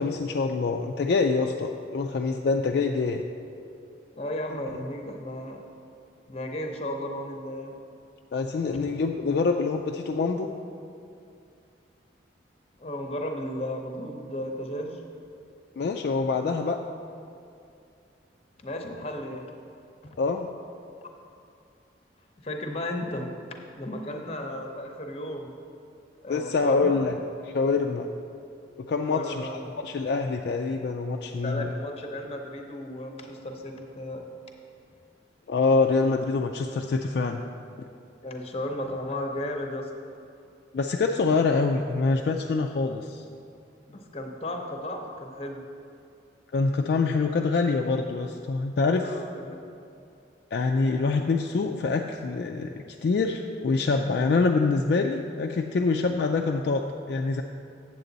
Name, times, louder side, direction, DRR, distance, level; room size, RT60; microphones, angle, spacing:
voice 1, 0.0-3.2 8.3-10.5 15.8-16.8 20.2-20.5 26.3-27.2 27.4-28.1 28.8-29.5 29.8-31.7 35.5-37.4 40.7-43.2 46.5-49.2 50.5-52.7 53.0-57.4, left 4 dB, 55° left, 2 dB, 0.3 m, -25 dB
voice 2, 4.2-5.6 6.3-7.8 12.8-15.0 18.6-19.4 20.0-20.2 22.4-23.3 23.8-25.5 26.2-27.0 29.0-29.6 31.4-34.2 37.4-37.5 38.2-39.9 43.9-45.6 48.9-49.6, left 1 dB, 30° left, 3 dB, 0.7 m, -34 dB
8.1 x 7.5 x 3.9 m, 2.5 s
head